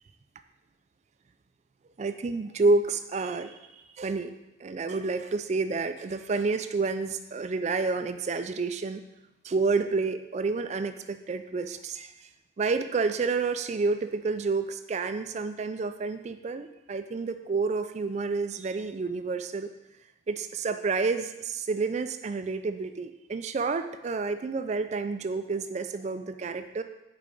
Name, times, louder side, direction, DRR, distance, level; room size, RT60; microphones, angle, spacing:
voice 1, 2.0-4.3 4.6-9.0 9.4-12.1 12.6-19.7 20.3-26.8, right 4 dB, 35° right, 9 dB, 0.3 m, -29 dB
6.4 x 4.6 x 3.9 m, 0.95 s
head